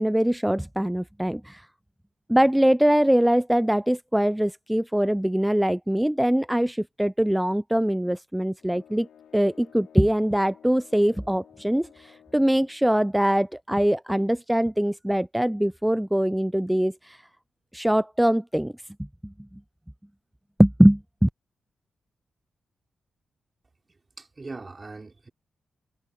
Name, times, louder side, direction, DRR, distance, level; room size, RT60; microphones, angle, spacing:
voice 1, 0.0-1.7 2.3-9.1 9.3-17.2 17.7-18.7 19.2-19.3 20.6-21.3, right 1 dB, 5° right, 0.4 m, -22 dB
sound 1, 8.6-12.9, left 9 dB, 85° left, 2.5 m, -54 dB
voice 2, 24.2-25.3, right 3 dB, 35° right, 3.7 m, -40 dB
cardioid pair, 65°, 0 cm